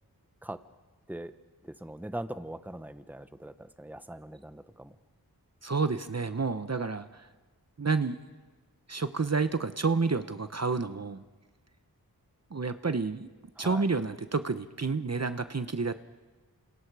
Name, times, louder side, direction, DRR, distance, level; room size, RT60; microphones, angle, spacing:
voice 1, 1.6-4.9 13.6-13.9, right 1 dB, 5° right, 10 dB, 1.1 m, -41 dB
voice 2, 5.6-7.3 7.8-8.2 8.9-11.2 12.5-13.3 13.6-15.9, right 4 dB, 45° right, 11 dB, 0.9 m, -29 dB
28.0 x 27.5 x 4.9 m, 1.3 s
wide cardioid pair, 50°, 37 cm